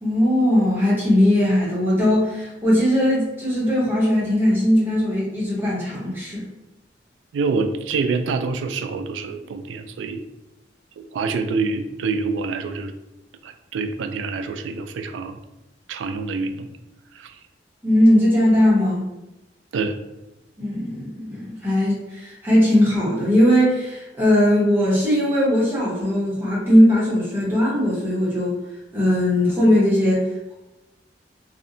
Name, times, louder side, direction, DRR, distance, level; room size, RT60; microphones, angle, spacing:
voice 1, 0.0-6.4 17.8-19.0 20.6-28.5 28.9-30.5, left 1 dB, 10° right, -7 dB, 0.9 m, -19 dB
voice 2, 7.3-10.2 11.0-12.9 13.4-15.4 15.9-16.7 17.1-17.3 19.7-20.0, right 4 dB, 90° right, 8 dB, 0.3 m, -26 dB
2.7 x 2.1 x 2.6 m, 0.96 s
head